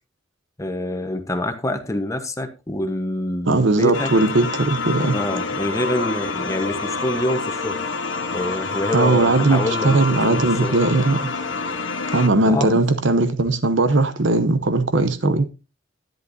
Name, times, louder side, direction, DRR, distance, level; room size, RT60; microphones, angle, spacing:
voice 1, 0.6-4.1 5.1-7.8 8.3-10.7 12.4-12.8, left 1 dB, 15° left, 1.1 m, -26 dB
voice 2, 3.5-5.1 8.9-11.3 12.1-15.5, right 2 dB, 80° right, 0.9 m, -19 dB
sound 1, 3.9-12.3, left 4 dB, 85° left, 1.2 m, -27 dB
11.0 x 10.5 x 2.7 m
head